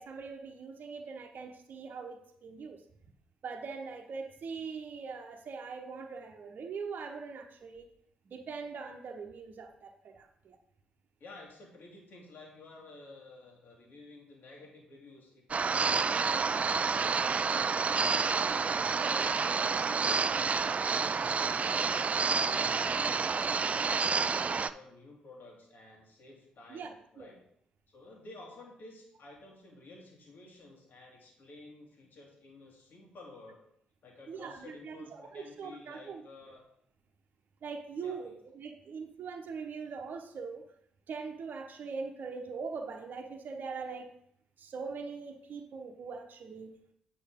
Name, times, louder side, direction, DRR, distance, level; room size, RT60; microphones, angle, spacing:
voice 1, 0.0-2.8 3.4-7.9 8.2-10.6 18.9-19.2 26.7-26.9 27.2-27.3 34.3-36.2 37.6-40.6 41.1-44.1 44.6-46.8, right 5 dB, 50° right, 3 dB, 1.0 m, -42 dB
voice 2, 11.2-18.4 18.7-27.4 27.9-33.6 34.0-36.6 38.0-38.3, left 2 dB, 55° left, -1 dB, 2.3 m, -52 dB
sound 1, 15.5-24.7, right 5 dB, 35° right, 0.4 m, -29 dB
8.4 x 5.5 x 3.7 m, 0.69 s
hypercardioid pair, 45°, 4 cm